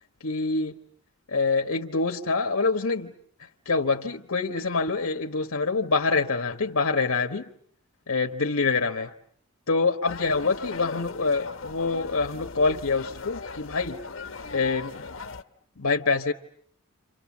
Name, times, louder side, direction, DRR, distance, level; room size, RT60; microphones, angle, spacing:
voice 1, 0.2-0.7 1.3-3.1 3.6-7.5 8.1-9.1 9.7-14.0 14.5-14.9 15.8-16.3, left 4 dB, 85° left, 1.2 m, -25 dB
sound 1, 10.0-15.4, left 4 dB, 65° left, 1.1 m, -38 dB
29.5 x 26.5 x 7.3 m
head